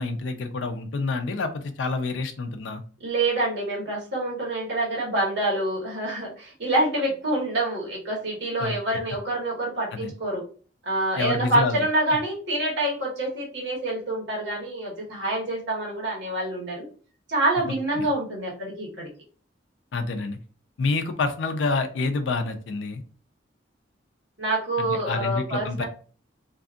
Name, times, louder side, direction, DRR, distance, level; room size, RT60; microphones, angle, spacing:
voice 1, 0.0-2.8 8.6-8.7 9.9-10.1 11.2-11.8 18.0-18.1 19.9-20.4 20.8-23.0 24.8-25.9, left 3 dB, 80° left, 7 dB, 0.4 m, -28 dB
voice 2, 3.0-10.4 10.8-16.9 17.3-19.1 24.4-25.9, right 1 dB, 65° right, -3 dB, 1.2 m, -26 dB
2.6 x 2.5 x 2.4 m, 0.41 s
head